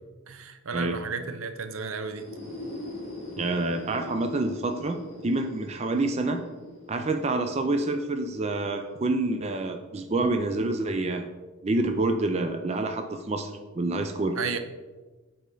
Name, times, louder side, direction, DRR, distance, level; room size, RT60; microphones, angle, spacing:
voice 1, 0.3-2.3 14.4-14.6, right 5 dB, 75° right, 8 dB, 0.6 m, -33 dB
sound 1, 2.0-9.7, left 1 dB, 30° left, 2.2 m, -42 dB
voice 2, 3.3-5.0 5.2-6.4 6.9-11.3 11.6-14.4, right 2 dB, 30° right, 5 dB, 0.4 m, -27 dB
8.1 x 4.3 x 3.8 m, 1.3 s
head